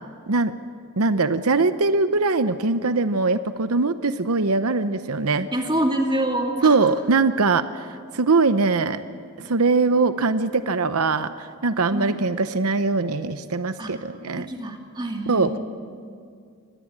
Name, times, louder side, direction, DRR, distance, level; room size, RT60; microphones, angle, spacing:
voice 1, 1.0-5.5 6.6-7.9 8.1-9.0 9.4-14.5 15.3-15.6, right 3 dB, 85° right, 11 dB, 0.8 m, -21 dB
voice 2, 5.5-6.8 11.9-12.2 13.8-14.0 14.4-15.6, right 1 dB, 20° right, 2 dB, 2.4 m, -26 dB
24.5 x 20.5 x 8.8 m, 2.2 s
head